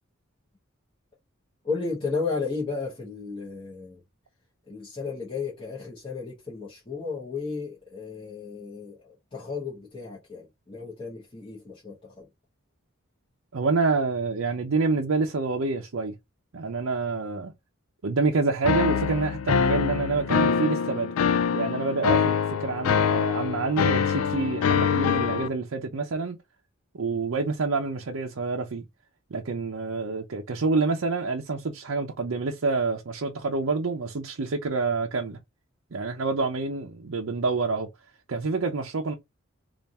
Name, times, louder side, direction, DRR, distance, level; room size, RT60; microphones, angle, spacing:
voice 1, 1.6-4.0 4.7-12.3, left 4 dB, 25° left, 1.1 m, -34 dB
voice 2, 13.5-16.1 16.5-17.5 18.0-21.1 21.5-26.4 26.9-28.8 29.3-35.4 35.9-37.9 38.3-39.1, right 3 dB, 70° right, 0.6 m, -27 dB
sound 1, 18.6-25.5, left 7 dB, 80° left, 0.3 m, -24 dB
3.4 x 2.5 x 4.1 m
head